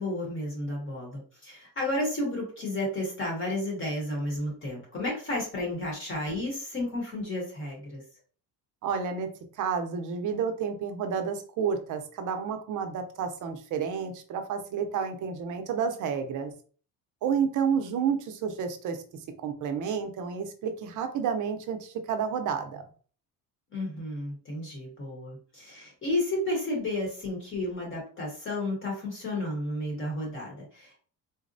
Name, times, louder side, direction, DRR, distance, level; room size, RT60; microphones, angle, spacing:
voice 1, 0.0-8.0 23.7-31.0, left 1 dB, 30° left, -1 dB, 0.9 m, -32 dB
voice 2, 8.8-9.3 9.5-16.5 17.2-19.0 19.4-22.8, right 6 dB, 50° right, 7 dB, 0.5 m, -30 dB
3.9 x 2.0 x 2.5 m, 0.42 s
cardioid pair, 165°, 39 cm